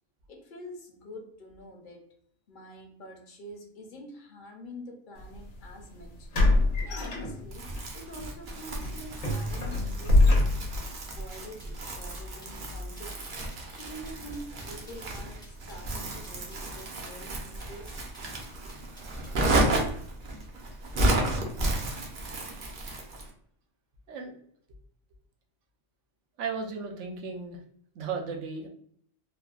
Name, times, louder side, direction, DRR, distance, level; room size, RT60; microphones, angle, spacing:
voice 1, 0.3-2.0 2.5-6.3 6.9-10.7 11.2-13.3 13.7-18.0, equal, 50° left, 1 dB, 0.7 m, -46 dB
sound 1, 5.2-5.4 6.3-7.8 8.2-8.4 8.8-10.9, left 2 dB, 85° left, 1.1 m, -24 dB
Crumpling crinkling, 7.5-23.3, right 1 dB, 55° right, 0.6 m, -32 dB
sound 2, 11.3-20.0, left 1 dB, 5° left, 0.4 m, -55 dB
voice 2, 26.4-27.6 27.9-28.7, right 5 dB, 70° right, 2 dB, 0.9 m, -35 dB
3.3 x 2.1 x 2.3 m, 0.63 s
omnidirectional pair, 1.3 m